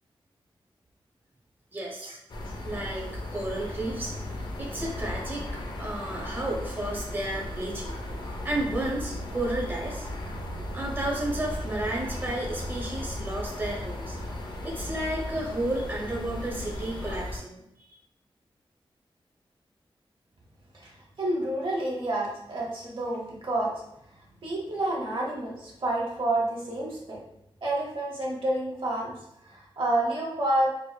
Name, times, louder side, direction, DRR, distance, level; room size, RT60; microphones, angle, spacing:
voice 1, 1.7-2.2 2.6-4.1 4.6-5.5 5.8-7.9 8.4-10.1 10.7-14.2 14.6-17.6, right 1 dB, 20° right, -3 dB, 0.8 m, -32 dB
sound 1, 2.3-17.4, left 1 dB, 50° left, 0.5 m, -36 dB
voice 2, 21.2-23.7 24.4-27.2 27.6-29.1 29.4-30.7, right 1 dB, 65° right, -4 dB, 0.9 m, -29 dB
4.6 x 2.0 x 2.3 m, 0.79 s
wide cardioid pair, 85°, 9 cm